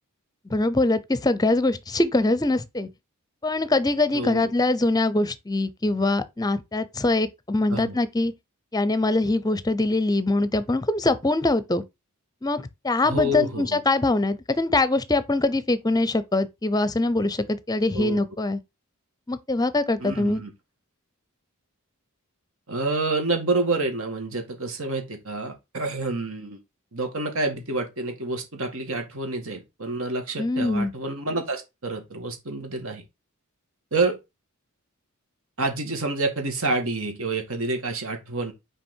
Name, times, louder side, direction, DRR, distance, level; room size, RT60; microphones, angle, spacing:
voice 1, 0.5-2.9 3.4-8.3 8.7-11.8 12.4-18.6 19.3-20.4 30.4-30.9, left 2 dB, 15° left, 0.7 m, -23 dB
voice 2, 4.1-4.5 7.7-8.0 13.0-13.8 17.9-18.2 20.0-20.5 22.7-26.6 26.9-33.0 33.9-34.2 35.6-38.5, right 2 dB, 65° right, 2.3 m, -28 dB
6.1 x 5.0 x 4.5 m
head